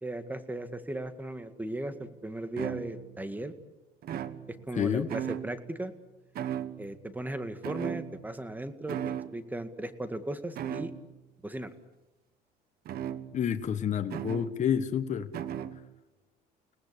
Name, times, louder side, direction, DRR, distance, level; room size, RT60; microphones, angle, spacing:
voice 1, 0.0-3.5 4.7-5.9 6.8-9.0 9.3-10.9 11.4-11.7, right 1 dB, 10° right, 10 dB, 2.0 m, -37 dB
sound 1, 1.9-2.0 2.6-3.3 4.0-4.8 5.1-5.8 6.4-7.1 7.6-8.5 8.9-9.4 10.6-11.1 12.9-13.6 14.1-14.6 15.3-15.9, right 10 dB, 65° right, 1.4 m, -37 dB
voice 2, 4.7-5.1 13.3-15.3, left 8 dB, 45° left, 8 dB, 1.5 m, -29 dB
30.0 x 18.5 x 8.4 m, 1.1 s
cardioid pair, 110°, 17 cm